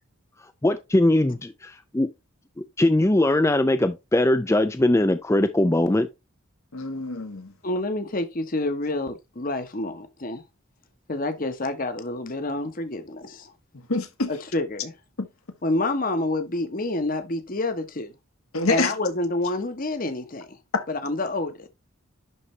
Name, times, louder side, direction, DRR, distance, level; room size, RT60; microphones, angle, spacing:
voice 1, 0.6-2.1 2.8-6.1, left 1 dB, 15° left, 0.4 m, -21 dB
voice 2, 6.7-7.5 13.9-14.3 15.2-15.3 18.5-18.9 20.7-20.8, left 3 dB, 85° left, 1.4 m, -26 dB
voice 3, 7.6-10.4 11.1-13.5 14.3-14.9 15.6-18.1 18.7-20.6 20.9-21.7, left 2 dB, 40° left, 1.0 m, -28 dB
11.0 x 4.1 x 3.2 m
head